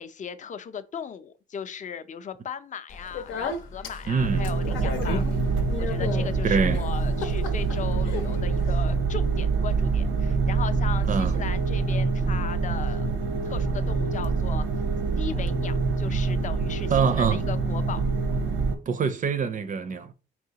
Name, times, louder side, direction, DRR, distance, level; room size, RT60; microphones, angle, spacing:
voice 1, 0.0-5.2 5.8-13.1 13.4-14.7 15.2-18.0, left 7 dB, 40° left, 0.5 m, -37 dB
Speech, 2.9-8.9, left 4 dB, 85° left, 0.8 m, -35 dB
voice 2, 4.1-4.5 6.4-6.8 11.1-11.4 16.0-16.2 16.9-17.5 18.9-20.1, right 5 dB, 40° right, 0.4 m, -25 dB
sound 1, 4.2-18.8, right 4 dB, 90° right, 0.7 m, -25 dB
4.7 x 3.0 x 2.8 m
cardioid pair, 90°, 20 cm